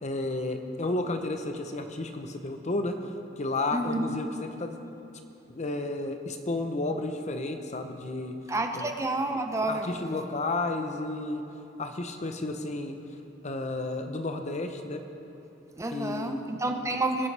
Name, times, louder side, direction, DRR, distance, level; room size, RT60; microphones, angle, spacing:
voice 1, 0.0-3.0 3.4-4.8 5.5-8.4 8.7-8.9 9.7-11.4 11.8-13.0 13.4-15.0 15.9-16.4, left 2 dB, 40° left, 6 dB, 0.7 m, -32 dB
voice 2, 3.7-4.1 8.5-9.9 15.8-17.3, right 2 dB, 15° right, 5 dB, 0.7 m, -29 dB
20.5 x 9.4 x 3.3 m, 2.8 s
head